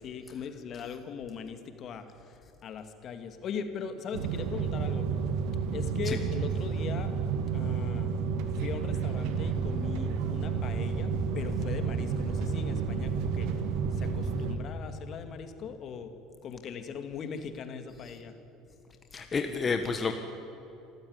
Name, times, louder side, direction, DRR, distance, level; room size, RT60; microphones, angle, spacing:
voice 1, 0.0-5.1 5.7-7.1 7.5-8.2 8.6-13.6 13.9-16.1 16.4-18.3, left 6 dB, 50° left, 8 dB, 2.2 m, -39 dB
sound 1, 4.1-14.6, right 6 dB, 75° right, 2.1 m, -31 dB
sound 2, 9.3-14.4, right 1 dB, 25° right, 2.8 m, -42 dB
voice 2, 19.1-20.1, left 5 dB, 30° left, 6 dB, 1.6 m, -30 dB
26.5 x 14.5 x 9.7 m, 3.0 s
hypercardioid pair, 80°, 0 cm